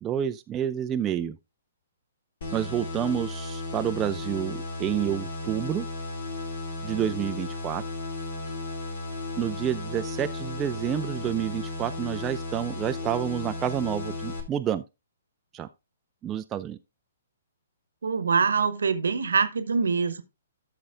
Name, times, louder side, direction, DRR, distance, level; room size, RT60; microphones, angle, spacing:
voice 1, 0.0-1.4 2.5-5.9 6.8-7.8 9.4-14.8 15.5-15.7 16.2-16.8, right 10 dB, 20° right, 0.4 m, -29 dB
sound 1, 2.4-14.4, left 2 dB, 55° left, 2.4 m, -34 dB
voice 2, 18.0-20.2, right 5 dB, 70° right, 1.0 m, -24 dB
13.5 x 6.6 x 2.5 m
figure-of-eight pair, 125°, 0 cm